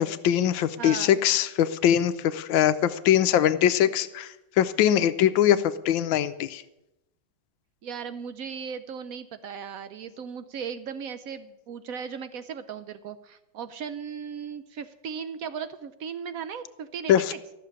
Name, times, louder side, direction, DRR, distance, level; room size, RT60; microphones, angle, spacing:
voice 1, 0.0-6.6 17.1-17.2, left 10 dB, 75° left, 13 dB, 1.3 m, -22 dB
voice 2, 0.8-1.2 7.8-17.4, right 7 dB, 80° right, 12 dB, 0.7 m, -37 dB
14.0 x 6.6 x 9.6 m, 0.91 s
omnidirectional pair, 2.2 m